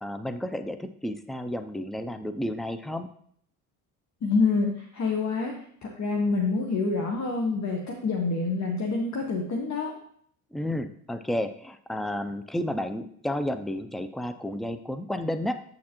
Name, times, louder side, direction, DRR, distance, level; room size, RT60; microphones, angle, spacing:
voice 1, 0.0-3.1 10.5-15.6, left 1 dB, ahead, 10 dB, 0.4 m, -31 dB
voice 2, 4.2-5.5 5.8-9.9, left 4 dB, 45° left, 1 dB, 1.1 m, -27 dB
8.4 x 6.5 x 2.9 m, 0.63 s
cardioid pair, 100°, 39 cm